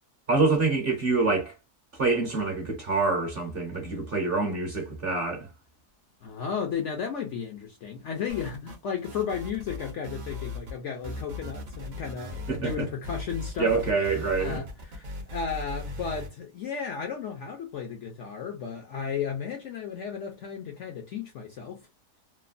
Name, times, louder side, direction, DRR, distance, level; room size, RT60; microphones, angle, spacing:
voice 1, 0.3-1.5 2.0-5.5 12.5-12.9 13.6-14.6, right 3 dB, 45° right, 0.8 m, -26 dB
voice 2, 6.2-13.8 14.4-21.9, left 6 dB, 65° left, 0.7 m, -34 dB
sound 1, 8.3-8.8 9.0-10.8 11.0-16.3, left 2 dB, 70° right, 0.4 m, -38 dB
3.0 x 2.1 x 2.4 m
omnidirectional pair, 1.7 m